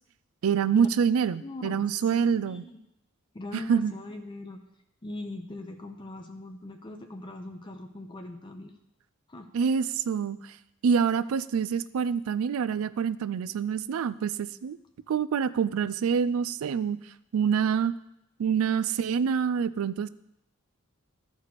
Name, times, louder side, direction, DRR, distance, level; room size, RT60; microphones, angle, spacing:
voice 1, 0.4-2.6 3.5-3.9 9.5-10.4 10.8-14.8 15.1-17.0 17.3-17.9 18.4-20.1, right 7 dB, 90° right, 16 dB, 0.4 m, -26 dB
voice 2, 1.4-2.8 3.3-4.6 5.0-8.7 9.3-9.5, left 2 dB, 25° left, 5 dB, 0.6 m, -41 dB
13.0 x 4.7 x 4.1 m, 0.83 s
head